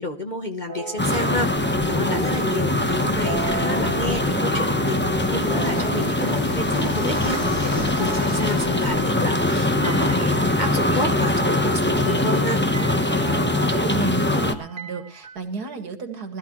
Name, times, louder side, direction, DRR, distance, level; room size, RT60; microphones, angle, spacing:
voice 1, 0.0-12.6, left 1 dB, 30° left, 4 dB, 1.0 m, -30 dB
sound 1, 0.7-1.8 2.1-9.3 9.8-15.4, right 3 dB, 30° right, 1.4 m, -37 dB
sound 2, 1.0-14.5, left 1 dB, 10° left, 0.8 m, -22 dB
Fixed-wing aircraft airplane, 1.6-8.9, left 3 dB, 65° left, 2.9 m, -36 dB
voice 2, 13.6-16.4, right 4 dB, 65° right, 7 dB, 2.3 m, -32 dB
20.0 x 13.5 x 3.1 m, 0.32 s
omnidirectional pair, 1.8 m